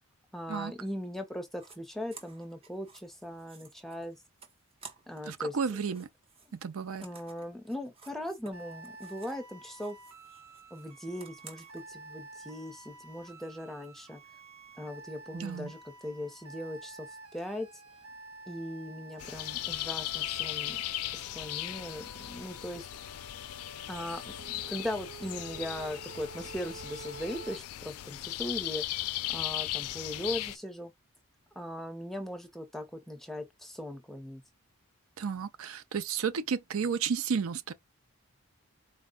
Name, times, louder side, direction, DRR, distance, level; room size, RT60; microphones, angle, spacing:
voice 1, 0.3-4.2 5.1-5.6 7.0-10.0 10.7-14.2 14.8-17.7 18.5-20.8 21.1-22.9 23.9-28.8 29.3-30.9 31.6-34.4, left 1 dB, ahead, 0.7 m, -39 dB
sound 1, 1.5-1.8 2.1-5.3 5.6-9.5 9.7-11.8, right 4 dB, 25° right, 0.9 m, -54 dB
voice 2, 5.3-6.1 6.5-7.0 15.3-15.7 35.2-37.7, right 6 dB, 70° right, 0.5 m, -32 dB
sound 2, 8.5-27.6, right 3 dB, 85° right, 1.1 m, -50 dB
sound 3, 19.2-30.6, left 15 dB, 80° left, 0.3 m, -37 dB
4.3 x 2.2 x 3.7 m
head